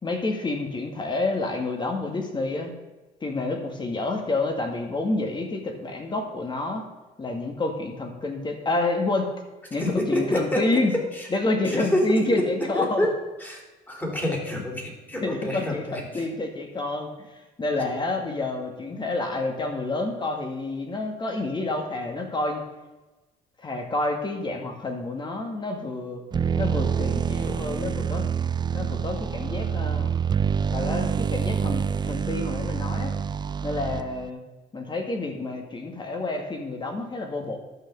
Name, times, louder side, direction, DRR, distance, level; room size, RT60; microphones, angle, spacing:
voice 1, 0.0-2.7 3.2-6.9 7.2-9.3 9.7-10.9 11.3-13.1 15.2-17.1 17.6-22.6 23.6-26.2 26.6-28.3 28.7-30.1 30.7-33.1 33.6-34.4 34.7-37.6, left 2 dB, 25° left, 3 dB, 2.1 m, -28 dB
voice 2, 9.8-11.3 11.6-16.3, left 1 dB, 10° left, 0 dB, 3.2 m, -28 dB
sound 1, 26.3-34.3, right 7 dB, 25° right, 0.4 m, -26 dB
12.0 x 5.7 x 6.9 m, 1.1 s
cardioid pair, 110°, 17 cm